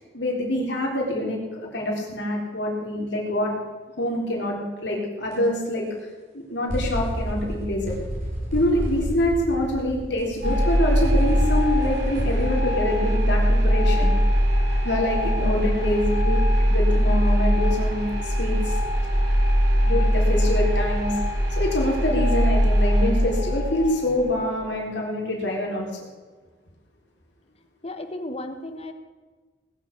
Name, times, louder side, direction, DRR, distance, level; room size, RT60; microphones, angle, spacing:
voice 1, 0.1-1.4 1.7-3.5 4.0-5.8 6.3-8.0 8.5-14.1 14.8-18.8 19.8-21.1 21.5-25.9, left 1 dB, 85° left, -2 dB, 3.9 m, -25 dB
sound 1, 5.3-5.4 6.7-12.5, equal, 45° right, 5.2 m, -31 dB
sound 2, 10.4-24.5, equal, 70° right, 5.0 m, -21 dB
voice 2, 15.4-15.7 27.8-28.9, left 1 dB, 35° left, 8 dB, 1.3 m, -34 dB
19.5 x 6.8 x 8.6 m, 1.3 s
head